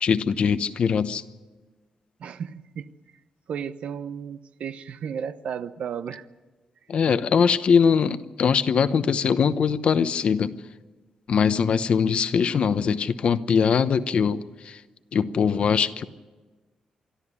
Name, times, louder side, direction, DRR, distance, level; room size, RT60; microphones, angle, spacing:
voice 1, 0.0-1.2 6.9-10.5 11.3-14.8 15.1-16.0, left 6 dB, 60° left, 12 dB, 0.9 m, -22 dB
voice 2, 2.2-2.9 3.5-6.3, right 7 dB, 70° right, 12 dB, 0.9 m, -34 dB
24.0 x 13.0 x 9.7 m, 1.3 s
cardioid pair, 95°, 2 cm